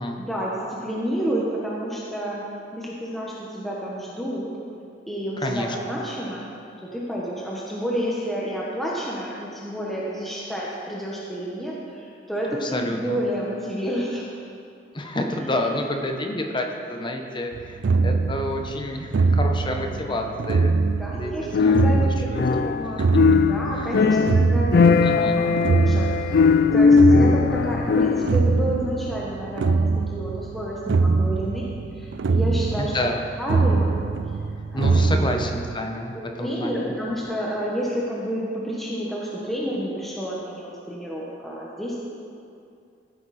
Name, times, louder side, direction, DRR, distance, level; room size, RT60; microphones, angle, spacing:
voice 1, 0.2-2.5 2.7-4.5 5.1-6.4 6.8-14.3 19.9-20.2 21.0-32.9 33.3-34.1 34.7-35.4 36.1-42.0, equal, ahead, -6 dB, 1.2 m, -30 dB
voice 2, 5.4-6.0 12.6-13.2 14.9-20.7 21.1-22.4 22.8-23.2 23.7-24.1 25.0-25.4 32.7-33.2 34.7-36.9, left 1 dB, 25° left, 3 dB, 0.9 m, -29 dB
sound 1, 17.5-35.8, right 4 dB, 75° right, 0.4 m, -23 dB
sound 2, 21.5-22.9 23.1-28.4, left 5 dB, 55° left, 0.4 m, -19 dB
15.5 x 8.8 x 4.2 m, 2.5 s
head